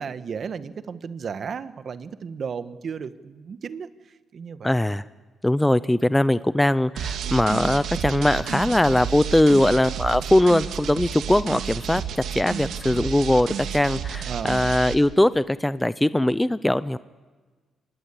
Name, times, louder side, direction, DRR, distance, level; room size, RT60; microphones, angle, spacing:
voice 1, 0.0-4.7 14.2-14.6, right 6 dB, 50° right, 11 dB, 1.4 m, -34 dB
voice 2, 4.6-5.0 5.4-17.0, left 1 dB, 10° left, 15 dB, 0.7 m, -21 dB
sound 1, 7.0-14.9, right 8 dB, 75° right, 2.1 m, -31 dB
26.0 x 20.0 x 8.5 m, 1.4 s
cardioid pair, 90°, 0 cm